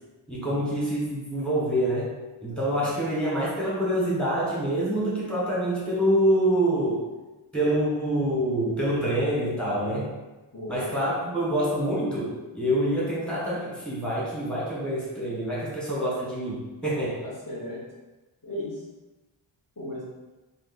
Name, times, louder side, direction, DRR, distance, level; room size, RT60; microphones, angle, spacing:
voice 1, 0.3-2.1 2.4-7.0 7.5-10.1 10.7-17.2, right 1 dB, ahead, -7 dB, 1.5 m, -26 dB
voice 2, 10.5-10.9 17.2-17.8 18.4-18.8 19.8-20.1, equal, 40° left, -8 dB, 1.1 m, -36 dB
3.1 x 2.5 x 4.2 m, 1.1 s
wide cardioid pair, 65°, 49 cm